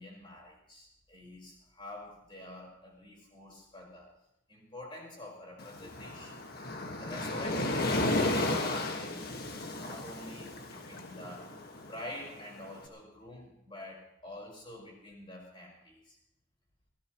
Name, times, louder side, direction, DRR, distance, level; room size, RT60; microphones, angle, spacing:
voice 1, 0.0-4.1 4.5-6.3 7.0-9.4 9.7-11.5 11.8-16.2, left 1 dB, 25° left, -2 dB, 4.8 m, -47 dB
Waves surf, 5.6-12.7, left 2 dB, 50° left, 1.7 m, -34 dB
23.0 x 17.0 x 3.1 m, 0.80 s
head